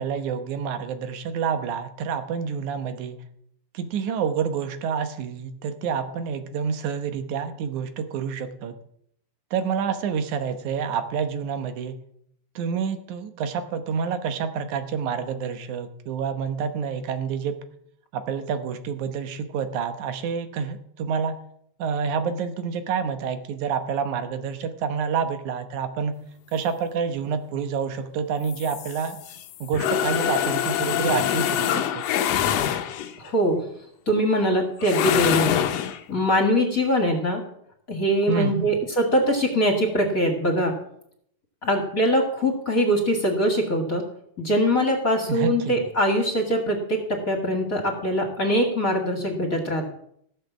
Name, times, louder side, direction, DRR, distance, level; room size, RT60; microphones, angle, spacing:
voice 1, 0.0-3.2 3.7-8.7 9.5-12.0 12.6-17.6 18.1-21.3 21.8-26.1 26.5-29.2 29.6-32.0 38.3-38.8 45.3-45.9, right 6 dB, 85° right, 8 dB, 2.6 m, -28 dB
sound 1, 28.5-33.3 34.8-36.0, left 10 dB, 70° left, 1.9 m, -25 dB
voice 2, 33.2-33.6 34.1-35.5 36.1-37.4 37.9-40.7 41.6-44.0 44.4-47.0 47.3-49.9, equal, 35° left, 3 dB, 1.9 m, -22 dB
16.5 x 6.6 x 7.2 m, 0.70 s
omnidirectional pair, 3.3 m